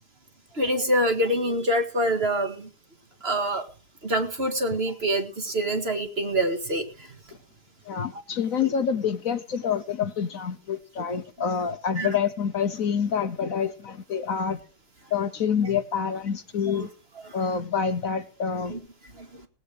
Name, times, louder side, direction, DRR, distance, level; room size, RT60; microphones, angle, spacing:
voice 1, 0.5-2.7 3.2-3.7 4.0-7.1 8.1-8.2 8.6-8.7 12.0-12.2 16.7-16.9 17.2-17.5 18.7-18.8 19.1-19.3, right 1 dB, 40° right, 6 dB, 2.0 m, -26 dB
voice 2, 7.9-14.6 15.1-16.9 17.3-18.7, left 7 dB, 60° left, 10 dB, 1.2 m, -27 dB
18.5 x 8.9 x 5.0 m, 0.36 s
omnidirectional pair, 1.7 m